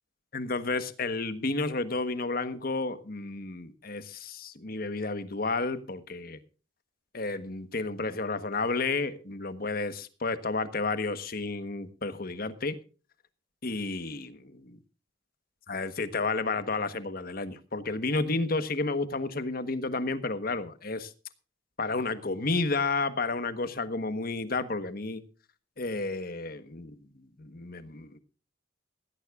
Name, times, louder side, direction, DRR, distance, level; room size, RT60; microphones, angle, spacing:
voice 1, 0.3-6.4 7.1-12.8 13.6-14.8 15.7-21.1 21.8-25.2 25.8-26.9 27.4-28.2, left 3 dB, 50° left, 1.3 m, -31 dB
16.5 x 16.5 x 2.5 m
head